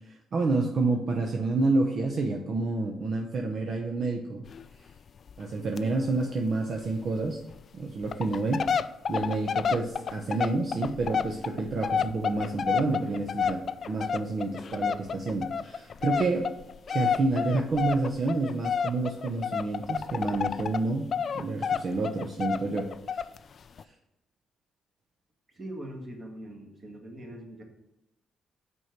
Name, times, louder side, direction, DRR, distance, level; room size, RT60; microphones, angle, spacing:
voice 1, 0.1-4.4 5.4-7.4 7.7-8.6 9.1-16.5 16.9-21.1 21.3-23.2, right 3 dB, 50° right, 1 dB, 0.9 m, -29 dB
sound 1, 4.5-4.6 4.9-5.0 5.3-5.4 5.8-5.9 6.2-6.3 6.8-6.9 7.5-7.6 8.0-20.8 21.1-23.4 23.8-23.9, left 7 dB, 50° left, 0.3 m, -30 dB
voice 2, 25.5-27.6, right 1 dB, 30° right, 1 dB, 1.8 m, -42 dB
6.2 x 4.6 x 6.6 m, 0.93 s
cardioid pair, 90°, 0 cm